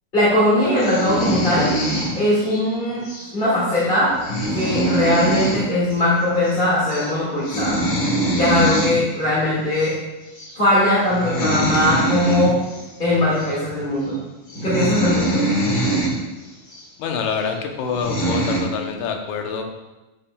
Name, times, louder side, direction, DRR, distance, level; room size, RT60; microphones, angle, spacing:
voice 1, 0.1-1.7 2.1-3.0 3.3-4.1 4.5-7.8 8.4-9.9 10.5-12.6 13.0-14.2 14.6-15.4, left 1 dB, 25° left, -9 dB, 1.3 m, -20 dB
sound 1, 0.8-2.6 3.0-3.3 3.7-3.8 4.1-5.6 5.9-6.0 6.3-6.6 6.9-7.1 7.4-8.9 9.7-9.9 10.4-10.6 11.1-12.8 13.4-13.5 14.1-14.2 14.5-16.1 16.7-16.8 17.5-17.6 17.9-18.6, right 1 dB, 40° left, 1.5 m, -23 dB
voice 2, 17.0-19.6, left 6 dB, 80° left, 3 dB, 2.3 m, -26 dB
12.0 x 5.8 x 2.2 m, 1.0 s
omnidirectional pair, 3.6 m